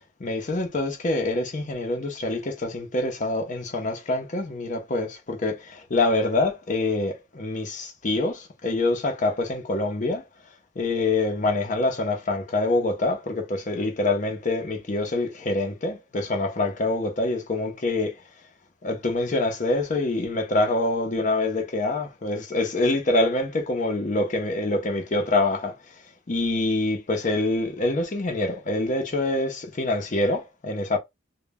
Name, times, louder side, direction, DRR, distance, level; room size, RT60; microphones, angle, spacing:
voice 1, 0.2-10.2 10.8-18.2 18.8-25.9 26.3-31.0, left 2 dB, 40° left, 0.5 m, -25 dB
2.1 x 2.0 x 3.3 m
head